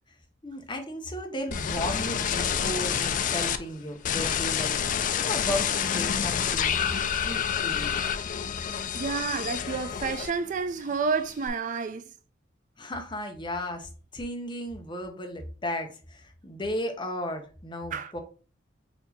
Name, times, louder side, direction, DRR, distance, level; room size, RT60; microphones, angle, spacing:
voice 1, 0.4-4.7 5.1-6.8 7.1-8.1 12.8-18.2, left 1 dB, 25° left, 0.8 m, -35 dB
sound 1, 1.5-3.6 4.0-10.6 10.9-11.5, left 8 dB, 40° left, 0.4 m, -28 dB
voice 2, 8.9-12.1 17.9-18.1, right 5 dB, 40° right, 0.3 m, -30 dB
4.3 x 2.7 x 4.1 m
head